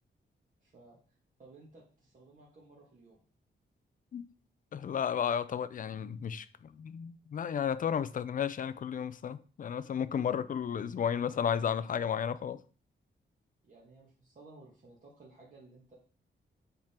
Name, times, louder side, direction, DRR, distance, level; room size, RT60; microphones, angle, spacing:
voice 1, 0.6-1.0 1.4-3.2 13.6-16.0, right 3 dB, 45° right, 1.7 m, -56 dB
voice 2, 4.7-12.6, left 8 dB, 45° left, 0.4 m, -33 dB
7.5 x 3.7 x 4.3 m
wide cardioid pair, 160°, 19 cm